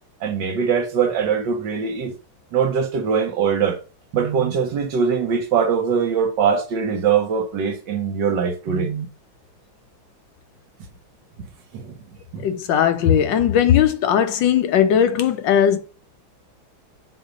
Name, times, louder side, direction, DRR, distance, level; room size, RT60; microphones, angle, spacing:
voice 1, 0.2-2.1 2.5-3.8 4.1-9.1 11.7-11.9 12.3-12.5, right 6 dB, 65° right, 1.5 m, -22 dB
voice 2, 12.4-15.8, left 9 dB, 70° left, 1.3 m, -18 dB
7.8 x 2.7 x 5.1 m
omnidirectional pair, 2.2 m